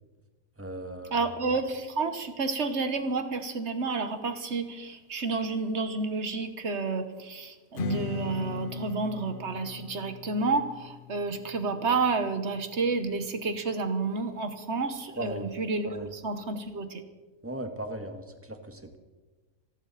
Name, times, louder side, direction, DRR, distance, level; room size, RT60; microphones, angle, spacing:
voice 1, 0.6-1.3 15.2-15.5 15.8-16.1 17.4-19.0, right 1 dB, 10° right, 6 dB, 1.3 m, -37 dB
voice 2, 1.1-17.0, right 4 dB, 50° right, 9 dB, 1.5 m, -30 dB
Strum, 7.8-13.0, left 7 dB, 50° left, 0.7 m, -40 dB
28.0 x 12.0 x 4.1 m, 1.3 s
omnidirectional pair, 1.5 m